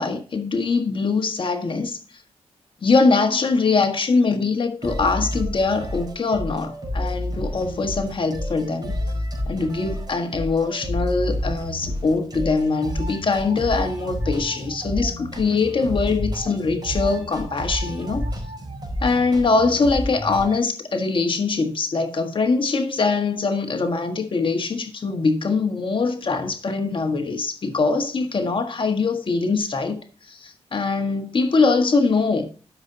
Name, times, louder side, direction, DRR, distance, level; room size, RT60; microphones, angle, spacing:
voice 1, 0.0-2.2 2.8-8.9 9.5-18.2 19.0-32.5, left 4 dB, 50° left, 1.5 m, -22 dB
sound 1, 4.8-20.6, equal, 35° right, 4.6 m, -30 dB
12.5 x 6.7 x 2.8 m
cardioid pair, 85°, 11 cm